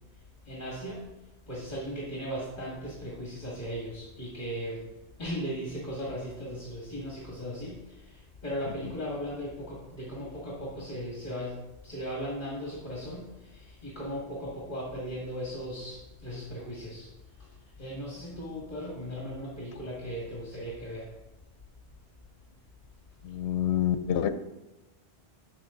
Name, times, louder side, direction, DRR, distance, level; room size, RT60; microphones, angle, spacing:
voice 1, 0.5-1.0 1.5-4.8 5.2-7.8 8.1-8.2 8.4-11.6 11.8-13.3 13.5-17.1 17.8-21.1, equal, 40° left, -5 dB, 2.1 m, -37 dB
voice 2, 23.2-24.4, left 10 dB, 80° left, 11 dB, 0.9 m, -27 dB
11.5 x 6.6 x 3.8 m, 0.99 s
omnidirectional pair, 1.1 m